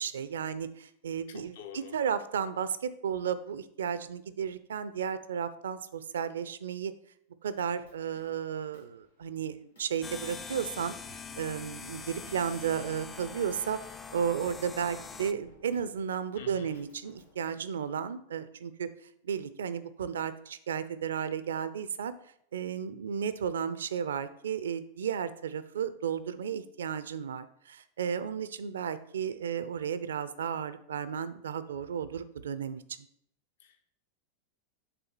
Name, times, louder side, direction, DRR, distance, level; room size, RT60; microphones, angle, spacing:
voice 1, 0.0-6.9 7.4-13.8 14.1-18.9 19.2-22.1 22.5-32.8, right 7 dB, 65° right, 14 dB, 0.4 m, -34 dB
voice 2, 1.3-2.0 16.4-16.8 33.6-33.9, left 8 dB, 55° left, 7 dB, 0.8 m, -47 dB
sound 1, 7.4-9.2 9.8-11.5 11.9-17.6, equal, 75° left, 2.7 m, -60 dB
sound 2, 10.0-15.3, left 5 dB, 20° left, 0.4 m, -44 dB
6.8 x 3.8 x 5.9 m, 0.70 s
figure-of-eight pair, 90°, 0 cm